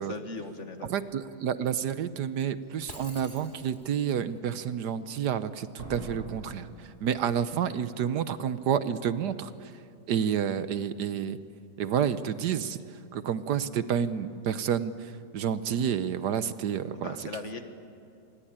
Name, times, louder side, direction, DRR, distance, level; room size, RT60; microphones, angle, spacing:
voice 1, 0.0-0.9 16.9-17.6, left 3 dB, 45° left, 7 dB, 1.6 m, -38 dB
voice 2, 0.9-9.7 10.1-11.4 11.8-17.2, right 8 dB, 70° right, 13 dB, 1.3 m, -29 dB
Slam, 2.6-2.7 3.3-3.7 5.8-7.7 7.9-8.0, equal, 40° right, 6.7 m, -45 dB
Shatter, 2.9-4.1, left 1 dB, 25° left, 2.5 m, -47 dB
26.5 x 21.5 x 8.9 m, 2.5 s
omnidirectional pair, 1.9 m